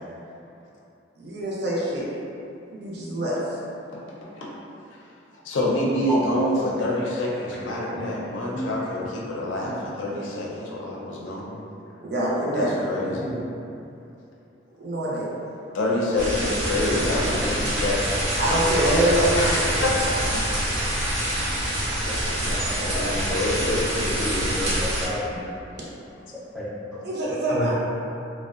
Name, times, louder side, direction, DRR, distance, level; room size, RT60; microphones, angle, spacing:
voice 1, 1.2-2.1 2.7-3.6 12.0-12.8 14.7-15.3 18.4-19.7 20.8-20.9 22.1-23.0 27.0-27.7, right 1 dB, 60° right, -6 dB, 0.5 m, -25 dB
voice 2, 5.4-11.6 12.5-13.2 15.7-18.2 19.3-20.4 22.9-24.6, left 1 dB, 85° left, -4 dB, 0.5 m, -27 dB
sound 1, 16.2-25.1, right 1 dB, 85° right, 0.9 m, -26 dB
voice 3, 17.0-17.8 24.6-25.5 26.5-27.0 27.5-27.7, equal, ahead, -8 dB, 0.4 m, -31 dB
2.6 x 2.0 x 2.4 m, 2.6 s
head